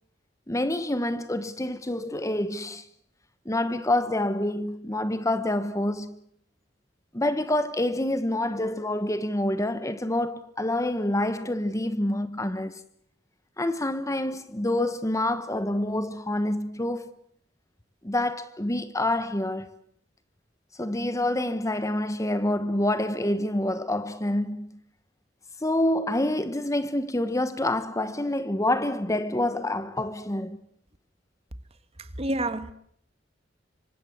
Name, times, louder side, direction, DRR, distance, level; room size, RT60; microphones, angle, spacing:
voice 1, 0.5-2.8 3.4-6.2 7.1-12.8 13.6-17.1 18.0-19.8 20.8-24.7 25.6-30.6, left 1 dB, 15° left, 1.1 m, -27 dB
voice 2, 32.0-32.7, right 1 dB, 35° right, 1.8 m, -29 dB
26.5 x 25.0 x 8.0 m
head